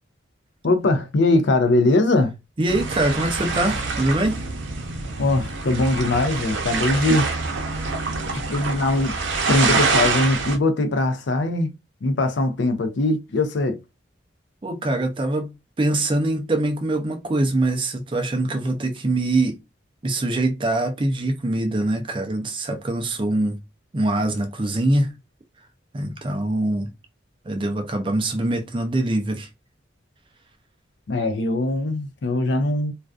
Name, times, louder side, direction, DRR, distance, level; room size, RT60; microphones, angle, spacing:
voice 1, 0.6-2.3 5.2-7.3 8.5-9.1 9.5-11.7 12.0-13.8 31.1-32.9, left 2 dB, 65° left, 0.5 m, -21 dB
voice 2, 2.6-4.4 14.6-19.6 20.0-23.6 23.9-25.1 25.9-26.9 27.5-29.5, right 2 dB, 25° right, 0.4 m, -23 dB
sound 1, 2.7-10.6, right 4 dB, 75° right, 0.6 m, -25 dB
2.5 x 2.2 x 2.3 m
head